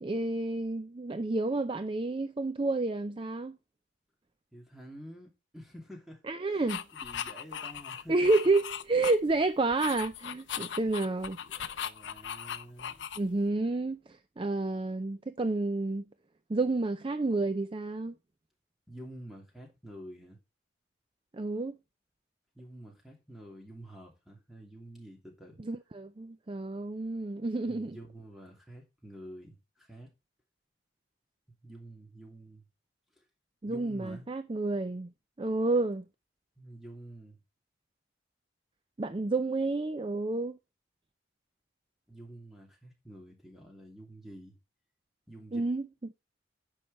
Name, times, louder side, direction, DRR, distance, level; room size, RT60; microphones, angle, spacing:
voice 1, 0.0-3.6 6.3-6.8 8.1-11.4 13.2-14.0 14.4-16.0 16.5-18.1 21.3-21.8 25.6-28.0 33.6-35.1 35.4-36.0 39.0-40.6 45.5-45.9, right 2 dB, 25° right, 0.4 m, -30 dB
voice 2, 4.5-6.2 6.5-6.6 6.9-8.3 11.2-13.1 18.9-20.4 22.5-25.6 27.6-30.1 31.6-32.6 33.2-33.3 33.7-34.2 36.6-37.4 42.1-44.6 45.3-45.7, right 1 dB, ahead, 2.8 m, -49 dB
sound 1, 6.7-9.4 9.7-13.5, left 8 dB, 70° left, 0.6 m, -38 dB
10.0 x 6.5 x 4.2 m
head